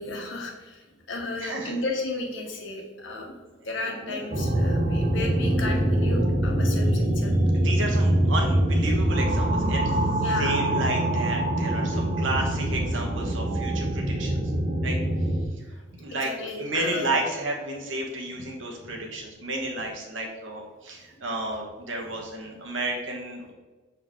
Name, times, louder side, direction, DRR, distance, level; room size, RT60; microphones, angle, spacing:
voice 1, 0.0-3.3 3.6-7.5 10.2-10.6 16.1-17.2 21.2-21.3, left 2 dB, 75° left, 1 dB, 1.4 m, -34 dB
voice 2, 1.4-1.8 4.0-4.3 7.5-14.4 14.8-15.0 15.7-16.3 16.6-23.5, right 2 dB, 75° right, 1 dB, 1.3 m, -32 dB
sound 1, 4.3-15.4, right 1 dB, 45° right, 0.9 m, -24 dB
6.9 x 4.3 x 3.7 m, 1.3 s
head